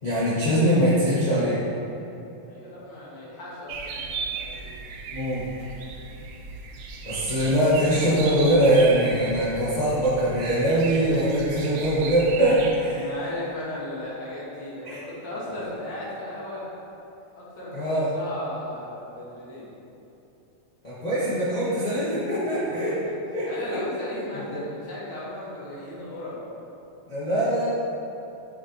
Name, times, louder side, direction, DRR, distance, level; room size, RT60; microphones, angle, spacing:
voice 1, 0.0-1.6 5.1-5.4 7.0-13.1 14.8-15.0 17.7-18.0 20.8-22.9 23.3-23.8 24.3-24.6 27.1-27.7, right 1 dB, 85° left, -11 dB, 0.3 m, -22 dB
voice 2, 2.5-4.7 6.1-6.2 12.8-16.7 17.4-19.7 22.6-23.0 23.4-26.5, left 1 dB, 45° left, -7 dB, 1.7 m, -36 dB
sound 1, 3.7-12.8, right 4 dB, 80° right, 1.4 m, -36 dB
7.2 x 6.6 x 2.9 m, 2.9 s
omnidirectional pair, 3.4 m